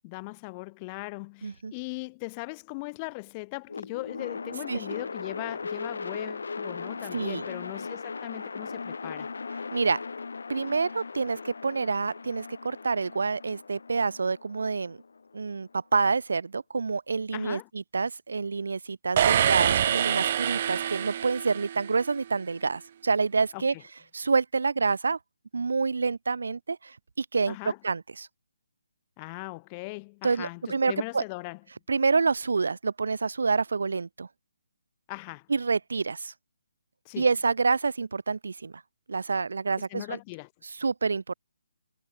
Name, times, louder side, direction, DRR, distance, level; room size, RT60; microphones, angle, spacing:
voice 1, 0.0-9.3 17.3-17.7 23.5-23.8 27.5-27.8 29.2-31.6 35.1-35.5 37.0-37.3 39.8-40.5, left 28 dB, 25° left, 0.7 m, -39 dB
voice 2, 1.4-1.7 4.7-4.8 7.1-7.4 9.7-10.0 10.5-15.0 15.3-23.7 24.1-25.2 25.5-27.5 27.8-28.3 30.2-31.2 31.9-34.3 35.5-36.3 37.2-38.7 39.1-40.2 40.8-41.3, right 4 dB, 70° right, 0.8 m, -27 dB
sound 1, 3.7-15.8, left 4 dB, 70° left, 2.1 m, -38 dB
sound 2, 19.2-22.0, right 10 dB, 40° right, 0.4 m, -25 dB
figure-of-eight pair, 145°, 0 cm